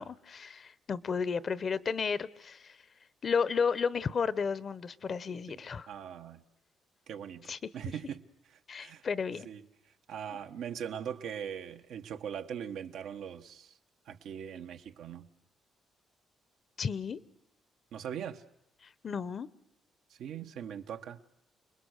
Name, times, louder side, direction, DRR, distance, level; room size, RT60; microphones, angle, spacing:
voice 1, 0.0-2.8 3.2-5.9 7.5-7.6 8.7-9.5 16.8-17.2 18.8-19.5, left 5 dB, 45° left, 0.9 m, -33 dB
voice 2, 5.9-6.4 7.1-8.2 8.5-9.0 9.3-13.8 14.1-15.3 17.9-18.4 20.1-21.2, right 8 dB, 80° right, 1.2 m, -41 dB
28.5 x 21.0 x 6.6 m
cardioid pair, 90°, 0 cm